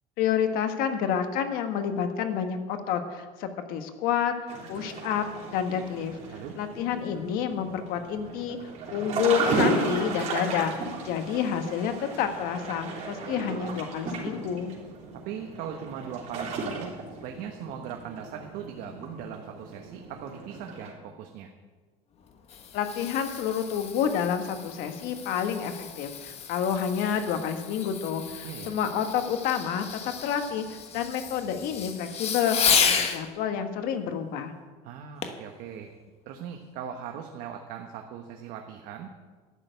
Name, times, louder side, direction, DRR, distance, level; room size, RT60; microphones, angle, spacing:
voice 1, 0.2-4.3 4.7-6.2 6.6-14.7 22.7-29.8 30.2-34.5, left 8 dB, 70° left, 7 dB, 1.4 m, -29 dB
sound 1, 4.5-20.9, right 3 dB, 50° right, 3.3 m, -34 dB
voice 2, 15.2-16.9 17.2-21.5 28.4-28.7 34.8-35.9 36.3-39.2, right 8 dB, 70° right, 4 dB, 1.2 m, -39 dB
Fireworks, 22.2-33.2 35.2-35.5 36.1-36.2, left 7 dB, 40° left, 1.3 m, -32 dB
11.5 x 6.6 x 9.2 m, 1.4 s
cardioid pair, 130°, 15 cm